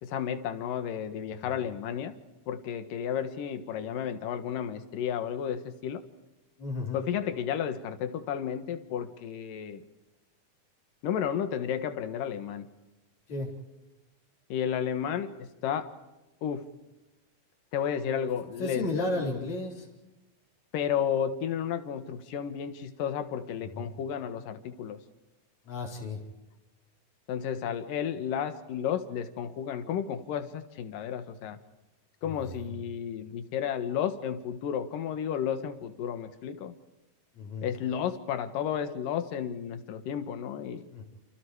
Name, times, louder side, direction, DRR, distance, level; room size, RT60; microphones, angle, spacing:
voice 1, 0.0-2.2 2.5-6.0 6.9-9.8 11.0-12.7 14.5-15.3 15.6-15.9 16.4-16.6 17.7-18.9 20.7-25.0 27.3-31.6 32.2-36.7 37.6-40.8, left 8 dB, 80° left, 10 dB, 3.2 m, -32 dB
voice 2, 6.6-7.0 13.3-13.5 18.6-19.9 23.6-23.9 25.7-26.2 32.3-32.4 32.7-32.8 37.4-37.7 40.9-41.0, left 3 dB, 55° left, -1 dB, 5.8 m, -33 dB
29.0 x 29.0 x 4.9 m, 1.0 s
omnidirectional pair, 3.9 m